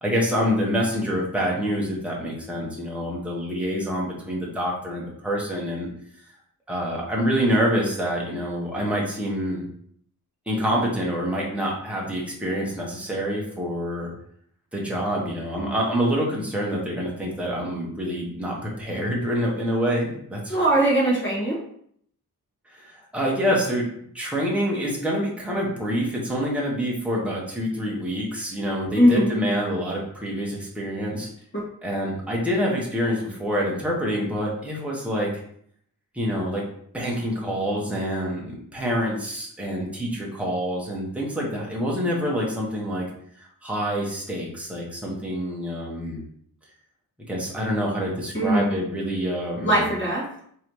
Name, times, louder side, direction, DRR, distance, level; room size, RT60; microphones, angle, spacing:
voice 1, 0.0-5.9 6.7-9.6 10.5-14.1 14.7-20.6 22.7-23.9 24.1-31.3 31.8-35.3 36.1-36.6 36.9-43.1 43.4-46.2 47.3-49.9, equal, 5° right, -3 dB, 0.8 m, -26 dB
voice 2, 20.5-21.6 29.0-29.4 48.3-48.8 49.6-50.3, right 1 dB, 30° left, -5 dB, 1.4 m, -20 dB
3.2 x 2.7 x 4.5 m, 0.65 s
wide cardioid pair, 180°, 37 cm